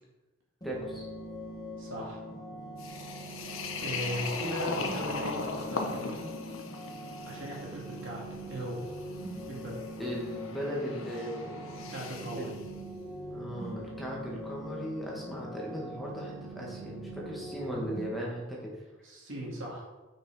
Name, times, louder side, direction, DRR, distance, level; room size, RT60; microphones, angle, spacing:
sound 1, 0.6-18.1, equal, 20° left, 1.4 m, -42 dB
voice 1, 0.6-1.1 10.0-11.8 13.3-18.7, equal, ahead, -4 dB, 1.7 m, -37 dB
voice 2, 1.8-2.2 3.4-6.2 7.2-8.8 9.5-9.8 11.9-12.5 19.0-19.8, right 1 dB, 70° right, -2 dB, 2.4 m, -38 dB
sound 2, 2.8-12.6, left 4 dB, 90° left, 1.0 m, -39 dB
6.8 x 5.8 x 4.9 m, 1.1 s
head